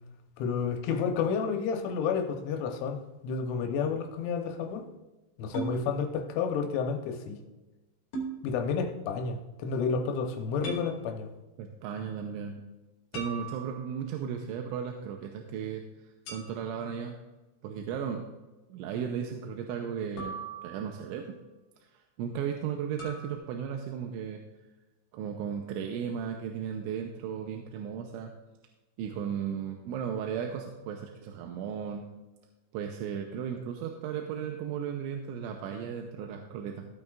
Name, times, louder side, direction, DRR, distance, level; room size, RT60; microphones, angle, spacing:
voice 1, 0.4-4.9 5.4-7.4 8.4-11.3, left 5 dB, 85° left, 4 dB, 3.5 m, -30 dB
sound 1, 5.5-5.8 8.1-8.4 10.6-10.9 13.1-14.1 16.3-16.9 20.2-21.1 23.0-23.4, right 4 dB, 45° left, 3.2 m, -39 dB
voice 2, 11.6-12.6 13.1-15.8 16.3-17.2 17.6-18.3 18.7-21.4 21.9-24.4 25.1-28.3 29.0-32.1 32.7-36.9, right 7 dB, 85° right, 3 dB, 3.1 m, -35 dB
16.0 x 8.6 x 2.4 m, 1.1 s
omnidirectional pair, 5.4 m